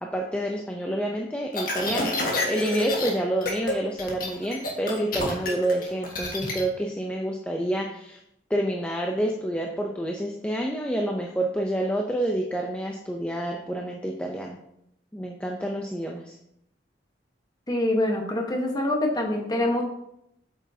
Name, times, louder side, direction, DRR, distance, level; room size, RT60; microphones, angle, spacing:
voice 1, 0.0-8.2 8.5-14.6 15.1-16.3, right 1 dB, 5° left, 1 dB, 0.5 m, -28 dB
sound 1, 1.5-3.1 3.4-3.7 4.0-6.6, left 2 dB, 55° left, 1.5 m, -28 dB
voice 2, 17.7-19.8, left 1 dB, 20° left, 1 dB, 1.1 m, -25 dB
8.2 x 6.1 x 2.7 m, 0.78 s
head